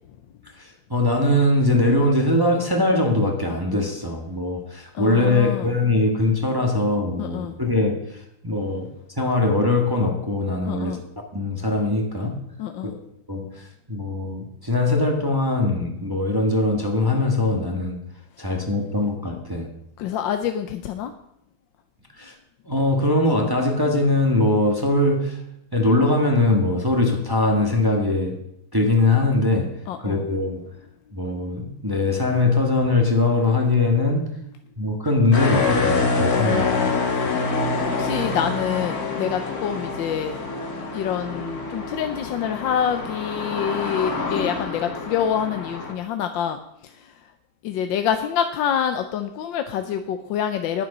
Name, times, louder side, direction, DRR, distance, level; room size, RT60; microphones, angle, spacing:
voice 1, 0.6-8.9 9.2-11.0 11.3-12.4 12.8-12.9 13.3-18.0 18.4-19.7 22.2-22.3 22.7-25.4 25.7-28.4 28.7-29.7 30.0-30.6 31.1-34.3 34.8-36.9, left 2 dB, 15° right, 2 dB, 1.3 m, -21 dB
voice 2, 4.9-5.7 7.2-7.6 10.7-11.0 12.6-13.0 20.0-21.1 29.9-30.3 36.3-37.0 37.3-40.4 40.9-47.3 47.6-50.8, left 9 dB, 80° left, 7 dB, 1.4 m, -27 dB
sound 1, 35.3-45.9, left 3 dB, 50° left, 2.0 m, -26 dB
10.5 x 9.7 x 5.4 m, 0.78 s
omnidirectional pair, 2.1 m